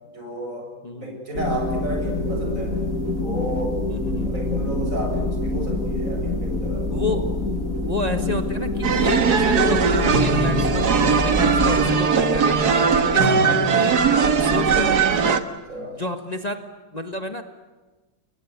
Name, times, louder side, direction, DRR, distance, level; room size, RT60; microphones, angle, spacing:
voice 1, 0.1-2.8 3.2-3.8 4.2-7.3 15.7-16.0, right 1 dB, 55° right, 2 dB, 8.1 m, -32 dB
voice 2, 0.8-1.2 3.9-4.3 6.9-7.4 7.8-15.3 15.9-16.7 16.9-17.4, left 2 dB, 25° left, 6 dB, 1.7 m, -30 dB
sound 1, 1.3-11.9, left 2 dB, 55° left, 3.1 m, -26 dB
sound 2, 8.8-15.4, right 5 dB, 80° right, 2.1 m, -19 dB
30.0 x 22.0 x 8.3 m, 1.2 s
omnidirectional pair, 1.7 m